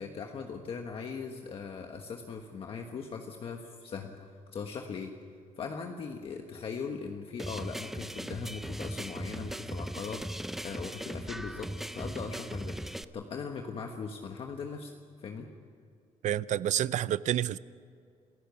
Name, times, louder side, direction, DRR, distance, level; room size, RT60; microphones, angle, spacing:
voice 1, 0.0-5.1 5.6-11.7 11.9-14.9 15.2-15.5, left 5 dB, 45° left, 1.4 m, -40 dB
sound 1, 7.4-13.0, right 1 dB, ahead, 0.5 m, -38 dB
voice 2, 16.2-17.6, right 11 dB, 60° right, 0.5 m, -29 dB
28.0 x 15.5 x 7.0 m
cardioid pair, 175°, 14 cm